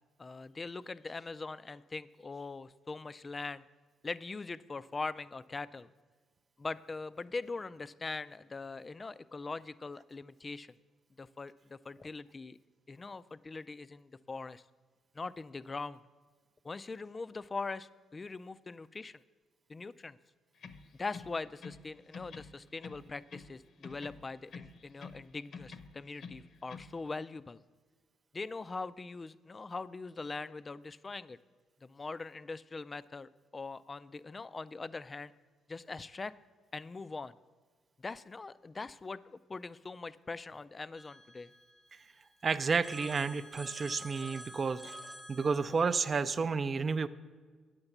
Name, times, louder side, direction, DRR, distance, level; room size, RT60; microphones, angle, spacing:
voice 1, 0.2-3.6 4.0-5.9 6.6-10.8 11.2-12.6 12.9-14.6 15.1-16.0 16.6-19.2 19.7-20.2 21.0-27.6 28.3-31.4 31.8-35.3 35.7-36.3 36.7-37.3 38.0-41.5, left 3 dB, 30° left, 16 dB, 0.3 m, -42 dB
sound 1, 20.5-21.9 22.1-23.6 23.8-25.2 25.5-26.9, left 5 dB, 65° left, 0.8 m, -48 dB
Telephone, 40.9-42.3 42.8-46.2, equal, ahead, 0.9 m, -50 dB
voice 2, 42.4-45.0 45.3-47.1, right 5 dB, 40° right, 13 dB, 0.5 m, -31 dB
8.9 x 6.6 x 7.1 m, 1.5 s
cardioid pair, 90°, 0 cm